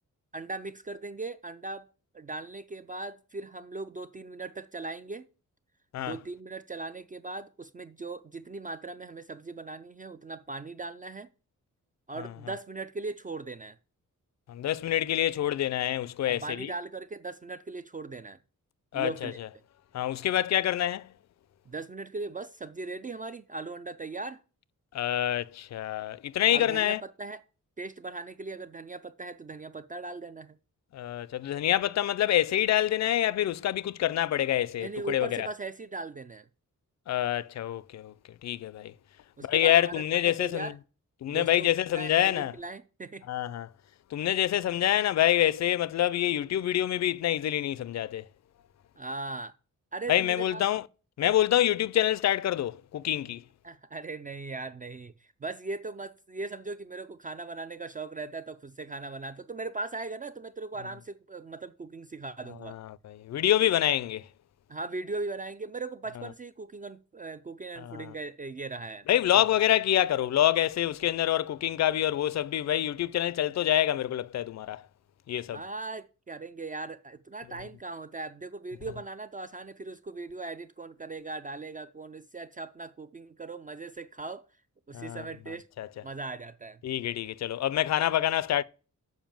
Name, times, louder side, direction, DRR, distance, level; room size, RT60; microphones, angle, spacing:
voice 1, 0.3-1.9 2.1-5.3 6.0-11.3 12.1-13.8 16.2-18.4 18.9-19.4 21.7-24.4 26.5-27.4 27.8-30.6 34.8-36.5 39.4-40.8 41.3-43.2 49.0-49.5 49.9-50.6 53.6-62.8 64.7-69.1 69.3-69.4 75.5-84.4 84.9-85.7 86.0-86.8, right 3 dB, 25° right, 0.3 m, -39 dB
voice 2, 14.5-16.7 18.9-19.5 19.9-21.1 24.9-27.0 30.9-35.5 37.1-38.1 38.4-38.9 39.4-40.7 41.2-42.5 43.3-43.7 44.1-48.3 50.1-50.8 51.2-53.4 62.6-64.3 66.2-66.3 67.8-68.1 69.1-74.8 75.3-75.6 84.9-85.3 85.8-85.9 86.8-88.6, left 12 dB, 55° left, 0.4 m, -26 dB
7.2 x 5.4 x 7.3 m
wide cardioid pair, 180°, 32 cm